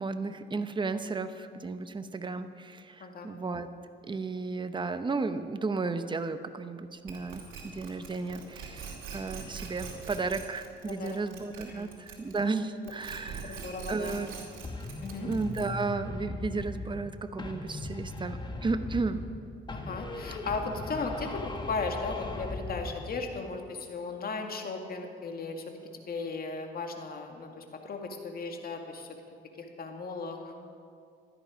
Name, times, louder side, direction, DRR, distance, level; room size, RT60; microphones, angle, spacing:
voice 1, 0.0-3.7 4.1-13.6 13.9-14.3 15.2-19.2, right 3 dB, 25° right, 10 dB, 0.8 m, -34 dB
sound 1, 7.1-12.6 12.8-15.9, right 6 dB, 85° right, 2.4 m, -43 dB
voice 2, 10.9-11.2 11.7-11.9 13.4-14.2 15.0-15.3 19.7-25.6 25.9-29.1 29.6-30.5, left 4 dB, 50° left, 3 dB, 2.1 m, -36 dB
sound 2, 14.6-17.1 17.4-19.4 19.7-23.1, left 2 dB, 20° left, 1.6 m, -38 dB
16.0 x 12.5 x 5.1 m, 2.4 s
cardioid pair, 90°, 20 cm